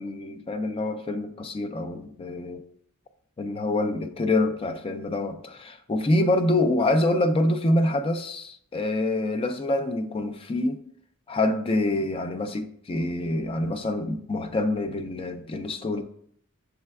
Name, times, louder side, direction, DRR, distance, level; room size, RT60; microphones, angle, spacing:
voice 1, 0.0-2.6 3.4-10.8 11.3-16.0, left 2 dB, 25° left, 0.4 m, -26 dB
6.7 x 3.2 x 2.3 m
head